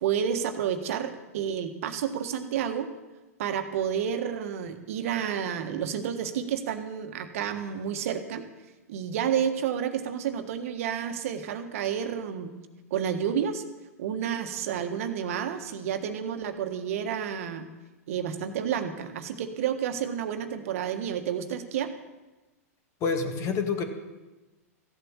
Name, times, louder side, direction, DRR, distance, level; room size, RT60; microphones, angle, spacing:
voice 1, 0.0-2.9 3.4-8.5 8.9-12.5 12.9-13.6 14.0-17.7 18.1-21.9, right 8 dB, 65° right, 7 dB, 1.5 m, -30 dB
voice 2, 23.0-23.8, left 5 dB, 35° left, 6 dB, 2.1 m, -27 dB
15.0 x 7.9 x 8.8 m, 1.1 s
hypercardioid pair, 110°, 8 cm